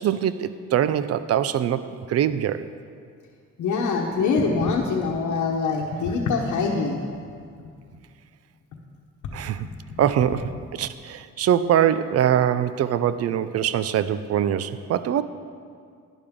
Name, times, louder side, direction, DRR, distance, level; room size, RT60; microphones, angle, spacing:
voice 1, 0.0-1.8 2.1-2.7 9.3-9.7 10.0-10.5 10.8-15.2, right 10 dB, 55° right, 14 dB, 0.5 m, -23 dB
voice 2, 3.6-7.0 9.6-10.0, left 4 dB, 75° left, -3 dB, 1.1 m, -24 dB
12.0 x 10.0 x 3.7 m, 2.2 s
cardioid pair, 90°, 30 cm